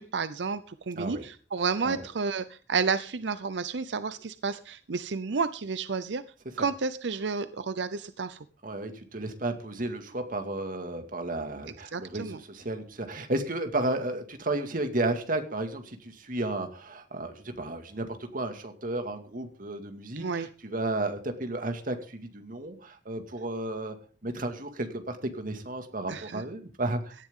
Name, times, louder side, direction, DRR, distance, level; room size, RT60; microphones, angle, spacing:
voice 1, 0.0-6.2 6.6-8.4 11.9-12.4 20.2-20.5 26.1-26.4, right 5 dB, 90° right, 13 dB, 0.6 m, -31 dB
voice 2, 8.6-24.0 24.2-27.1, right 2 dB, 50° right, 6 dB, 2.1 m, -33 dB
17.0 x 12.0 x 3.8 m, 0.37 s
head